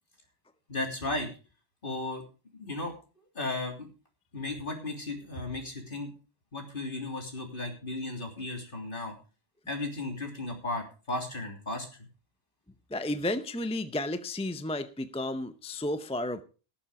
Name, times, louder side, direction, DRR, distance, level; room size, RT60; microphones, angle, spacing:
voice 1, 0.7-1.3 1.8-2.2 2.6-2.9 3.4-3.9 4.3-6.1 6.5-9.1 9.7-11.9, left 2 dB, 55° left, 2 dB, 3.5 m, -35 dB
voice 2, 12.9-16.4, left 1 dB, 5° left, 10 dB, 0.6 m, -32 dB
18.5 x 7.2 x 4.9 m, 0.35 s
omnidirectional pair, 1.1 m